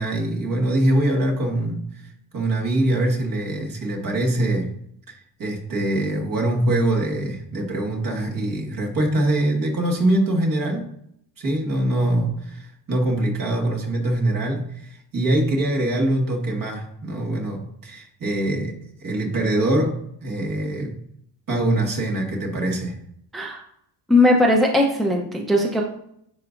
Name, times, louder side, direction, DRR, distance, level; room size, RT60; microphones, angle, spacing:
voice 1, 0.0-4.7 5.4-10.8 11.4-21.0 21.5-23.0, right 1 dB, 50° right, 0 dB, 1.6 m, -23 dB
voice 2, 24.1-25.8, left 1 dB, ahead, 0 dB, 0.6 m, -18 dB
10.5 x 3.8 x 2.5 m, 0.72 s
cardioid pair, 130°, 42 cm